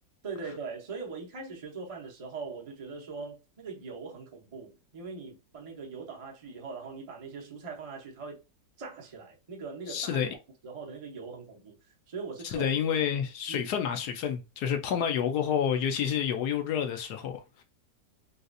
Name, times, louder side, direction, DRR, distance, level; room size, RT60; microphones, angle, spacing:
voice 1, 0.2-8.4 8.8-10.4 10.6-12.7 13.5-13.7, right 4 dB, 40° right, 0.5 m, -41 dB
voice 2, 9.9-10.3 12.4-17.4, left 8 dB, 70° left, 1.0 m, -29 dB
4.0 x 2.4 x 2.5 m
omnidirectional pair, 2.0 m